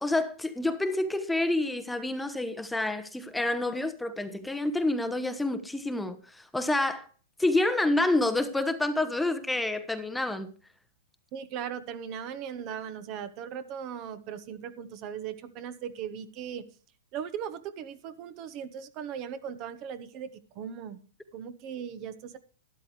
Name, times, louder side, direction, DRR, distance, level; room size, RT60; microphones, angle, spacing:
voice 1, 0.0-7.1 7.4-10.5, left 2 dB, 5° left, 0.9 m, -28 dB
voice 2, 11.3-16.6 17.1-21.0 21.3-22.4, right 8 dB, 40° right, 1.1 m, -38 dB
12.5 x 11.5 x 3.3 m
hypercardioid pair, 120°, 0 cm